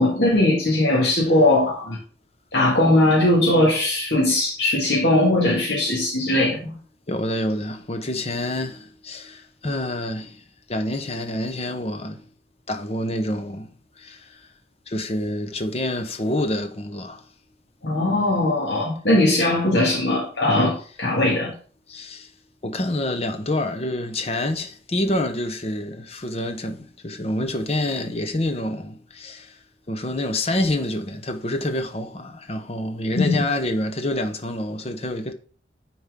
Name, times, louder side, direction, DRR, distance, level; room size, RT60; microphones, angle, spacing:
voice 1, 0.0-2.0 2.5-6.8 17.8-21.5 33.2-33.4, left 1 dB, 70° left, 1.8 m, -19 dB
voice 2, 7.1-12.2 12.7-14.5 14.9-17.2 21.9-22.3 22.6-29.6 29.9-35.3, left 1 dB, 35° left, 0.8 m, -27 dB
9.4 x 4.4 x 3.7 m
head